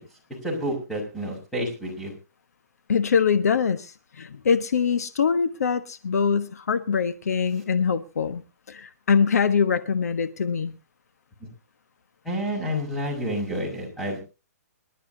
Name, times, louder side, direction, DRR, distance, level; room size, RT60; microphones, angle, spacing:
voice 1, 0.4-2.1 12.2-14.2, equal, ahead, 6.1 m, -29 dB
voice 2, 2.9-8.4 8.7-10.8, left 6 dB, 70° left, 1.2 m, -23 dB
26.0 x 12.0 x 2.8 m
hypercardioid pair, 150°, 9 cm